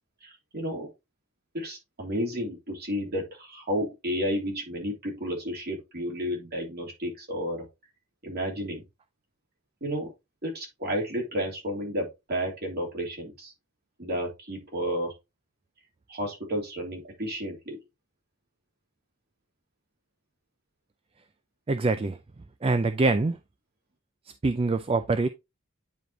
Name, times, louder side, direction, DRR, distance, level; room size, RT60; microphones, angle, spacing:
voice 1, 0.2-0.9 1.5-7.6 8.2-8.8 9.8-10.1 10.4-13.5 14.0-15.1 16.1-17.8, equal, 50° right, 3.1 m, -32 dB
voice 2, 21.7-22.2 22.6-23.4 24.4-25.3, right 3 dB, 25° right, 0.4 m, -24 dB
9.3 x 5.0 x 2.8 m
head